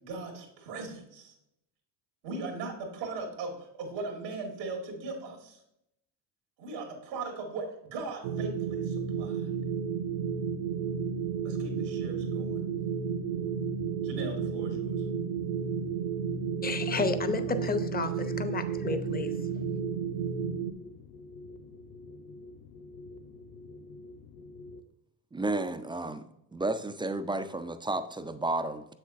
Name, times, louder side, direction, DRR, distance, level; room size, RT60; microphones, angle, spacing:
voice 1, 0.0-1.3 2.2-5.6 6.6-9.5 11.4-12.6 14.0-15.0, right 3 dB, 90° right, 2 dB, 1.7 m, -39 dB
sound 1, 8.2-20.7, right 6 dB, 65° right, 0.7 m, -32 dB
sound 2, 10.6-24.8, left 2 dB, 50° left, 0.8 m, -48 dB
voice 2, 16.6-19.3, left 4 dB, 20° left, 11 dB, 0.7 m, -31 dB
voice 3, 25.3-26.2 26.5-28.8, right 2 dB, 10° right, 10 dB, 0.3 m, -32 dB
7.3 x 6.4 x 2.5 m, 0.82 s
hypercardioid pair, 60°, 47 cm